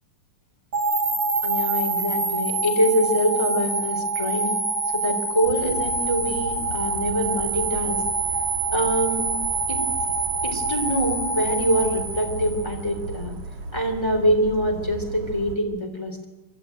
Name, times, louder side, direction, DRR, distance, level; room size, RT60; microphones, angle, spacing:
sound 1, 0.7-12.9, right 3 dB, 30° right, 2.9 m, -26 dB
voice 1, 1.4-4.6 4.9-8.0 8.7-9.3 9.7-9.8 10.4-13.3 13.7-16.3, right 1 dB, 10° left, 2 dB, 3.3 m, -24 dB
Bird vocalization bird call bird song, 5.4-15.6, right 2 dB, 85° right, 3.4 m, -36 dB
24.5 x 12.0 x 9.4 m, 1.1 s
omnidirectional pair, 3.5 m